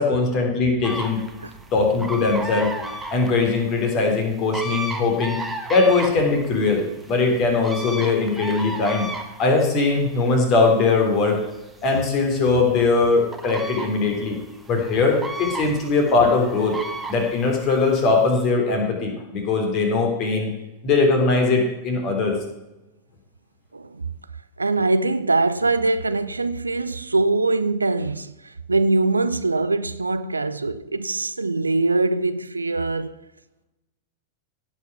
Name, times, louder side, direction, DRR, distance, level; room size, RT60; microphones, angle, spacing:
voice 1, 0.0-1.2 1.7-2.7 3.1-5.4 5.7-6.8 7.1-9.0 9.4-11.4 11.8-14.4 14.7-16.8 17.1-20.5 20.8-22.3, left 3 dB, 35° left, 3.3 m, -20 dB
sound 1, 0.8-18.5, right 2 dB, 5° right, 1.5 m, -35 dB
voice 2, 23.7-24.1 24.6-33.3, right 3 dB, 80° right, 0.5 m, -23 dB
16.5 x 5.8 x 6.0 m
figure-of-eight pair, 90°, 0 cm